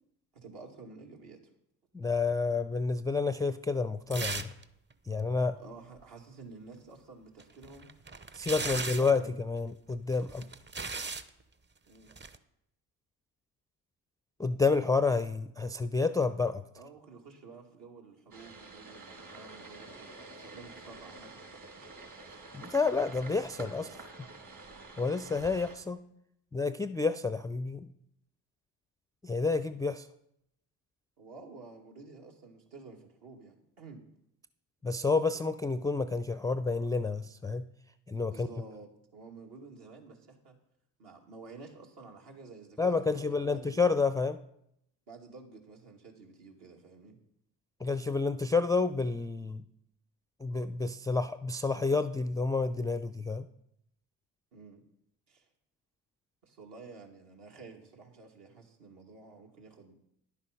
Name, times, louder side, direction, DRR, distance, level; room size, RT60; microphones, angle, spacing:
voice 1, 0.3-1.4 5.6-7.9 8.4-9.4 11.9-12.1 16.8-21.6 31.2-34.0 38.3-40.5 41.0-43.8 45.1-47.2 54.5-54.8 55.3-55.5 56.4-60.0, right 4 dB, 65° right, 1 dB, 2.3 m, -51 dB
voice 2, 1.9-4.5 5.1-5.6 8.3-10.5 14.4-16.6 22.5-24.0 25.0-26.0 26.5-27.9 29.2-30.1 34.8-37.6 38.1-38.5 42.8-44.4 47.8-49.6 50.4-53.5, left 4 dB, 10° left, 10 dB, 0.3 m, -29 dB
sound 1, 4.1-4.6 4.9-5.0 7.4-9.2 10.1-11.3 12.1-12.4, right 4 dB, 25° right, 0.8 m, -37 dB
sound 2, 18.3-25.8, right 3 dB, 40° right, 2.9 m, -48 dB
10.5 x 8.1 x 5.2 m, 0.77 s
hypercardioid pair, 60°, 46 cm